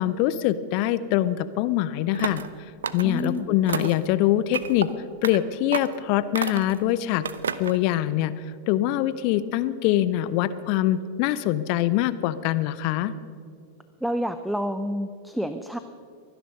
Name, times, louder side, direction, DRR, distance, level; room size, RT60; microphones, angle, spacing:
voice 1, 0.0-2.4 2.9-4.9 5.2-7.3 7.6-8.3 8.7-13.1, left 13 dB, 45° left, 15 dB, 0.6 m, -24 dB
sound 1, 2.1-2.5 2.8-3.3 3.7-4.1 4.5-4.9 5.2-5.4 5.7-6.0 6.3-6.8 7.2-7.8, right 7 dB, 70° right, 0.6 m, -30 dB
voice 2, 3.0-3.6 14.0-15.8, equal, ahead, 10 dB, 0.5 m, -29 dB
23.0 x 10.0 x 5.4 m, 2.3 s
figure-of-eight pair, 90°, 0 cm